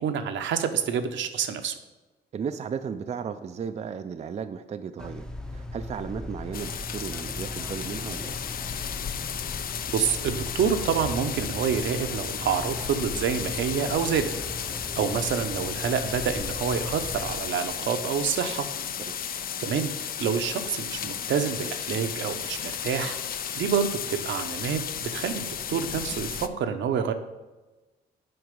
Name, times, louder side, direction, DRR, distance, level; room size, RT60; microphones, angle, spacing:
voice 1, 0.0-1.7 9.9-14.3 14.7-18.7 19.6-23.2 23.6-27.1, right 7 dB, 70° right, 8 dB, 0.8 m, -28 dB
voice 2, 2.3-8.4 19.0-19.1, right 6 dB, 35° right, 8 dB, 0.4 m, -35 dB
sound 1, 5.0-17.4, left 1 dB, 5° left, 0.6 m, -39 dB
sound 2, 6.5-26.5, left 8 dB, 45° left, 0.5 m, -34 dB
7.9 x 4.7 x 5.2 m, 1.1 s
cardioid pair, 90°, 20 cm